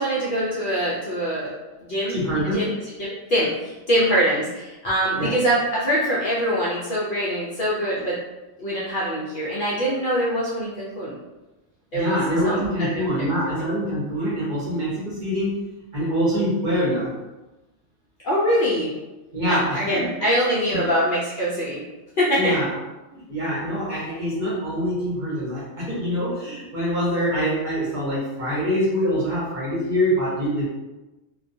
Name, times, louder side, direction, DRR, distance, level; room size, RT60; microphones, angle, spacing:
voice 1, 0.0-1.5 1.8-2.2 2.5-2.7 3.0-8.2 8.6-11.1 11.9-12.2 12.4-13.3 18.2-18.9 19.5-21.8 22.2-22.6, equal, 60° left, -7 dB, 0.5 m, -23 dB
voice 2, 2.1-2.6 5.1-5.3 11.9-15.6 15.9-17.1 19.3-20.1 20.7-20.8 22.3-22.7 23.1-30.7, equal, 45° right, -7 dB, 0.8 m, -24 dB
2.3 x 2.2 x 2.5 m, 1.1 s
omnidirectional pair, 1.3 m